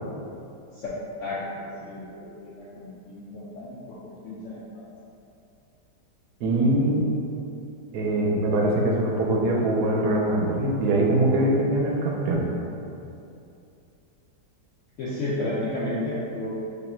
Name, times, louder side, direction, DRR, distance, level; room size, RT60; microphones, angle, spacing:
voice 1, 1.2-4.9 15.0-16.5, left 1 dB, 85° left, -8 dB, 0.6 m, -33 dB
voice 2, 6.4-7.0 7.9-12.4, right 1 dB, 75° right, -2 dB, 1.1 m, -22 dB
3.6 x 2.1 x 4.2 m, 2.7 s
omnidirectional pair, 1.9 m